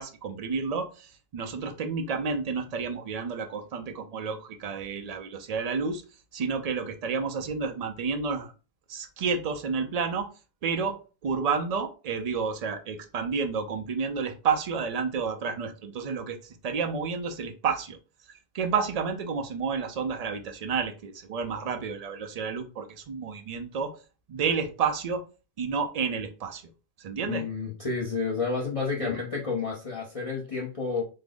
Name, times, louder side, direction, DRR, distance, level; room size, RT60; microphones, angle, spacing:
voice 1, 0.0-6.0 6.3-8.5 8.9-10.3 10.6-11.0 11.2-18.0 18.5-23.9 24.3-25.2 25.6-26.6 27.0-27.4 29.0-29.1, right 5 dB, 50° right, 7 dB, 0.5 m, -30 dB
voice 2, 27.3-31.0, left 4 dB, 40° left, -3 dB, 0.7 m, -30 dB
3.6 x 2.0 x 3.5 m, 0.34 s
omnidirectional pair, 1.0 m